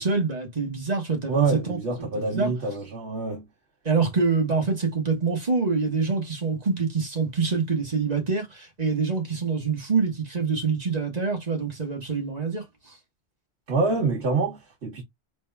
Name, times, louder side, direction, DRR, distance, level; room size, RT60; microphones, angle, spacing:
voice 1, 0.0-2.5 3.8-12.9, right 4 dB, 40° right, 1.5 m, -26 dB
voice 2, 1.3-3.5 13.7-15.0, right 3 dB, 80° right, 1.6 m, -26 dB
5.0 x 3.4 x 2.3 m
omnidirectional pair, 1.1 m